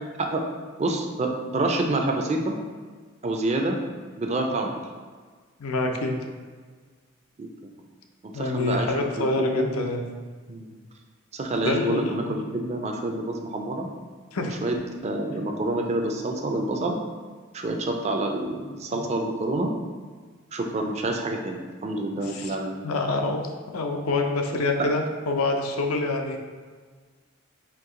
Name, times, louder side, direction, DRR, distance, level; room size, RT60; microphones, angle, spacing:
voice 1, 0.8-2.6 3.2-3.8 4.2-4.8 7.4-7.7 8.2-9.7 10.5-10.7 11.3-13.9 14.5-14.8 15.0-17.0 17.5-19.7 20.5-22.9, right 2 dB, 30° right, 3 dB, 0.4 m, -28 dB
voice 2, 5.6-6.2 8.3-10.0 11.7-12.3 14.3-14.5 18.9-19.1 22.2-22.6 22.8-23.4 23.7-26.4, left 2 dB, 85° left, 3 dB, 0.5 m, -26 dB
4.5 x 2.8 x 3.7 m, 1.5 s
head